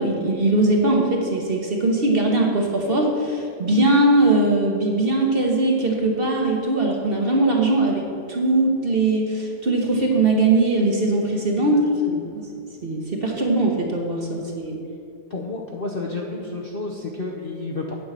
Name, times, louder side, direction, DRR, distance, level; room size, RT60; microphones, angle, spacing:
voice 1, 0.0-12.4 12.8-14.8, right 2 dB, 40° right, 0 dB, 1.1 m, -20 dB
voice 2, 15.3-18.0, left 3 dB, 50° left, 0 dB, 0.7 m, -31 dB
9.0 x 5.4 x 7.4 m, 2.5 s
omnidirectional pair, 1.8 m